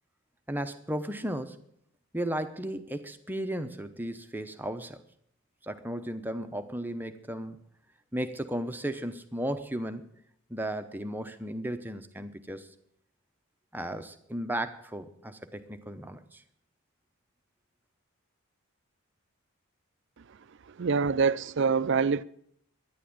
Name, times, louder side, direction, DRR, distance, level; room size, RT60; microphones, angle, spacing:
voice 1, 0.5-1.6 2.1-5.0 5.6-7.6 8.1-10.1 10.5-12.7 13.7-16.4, right 1 dB, 10° right, 0.7 m, -35 dB
voice 2, 20.8-22.2, right 5 dB, 55° right, 0.5 m, -25 dB
12.0 x 10.0 x 8.6 m
head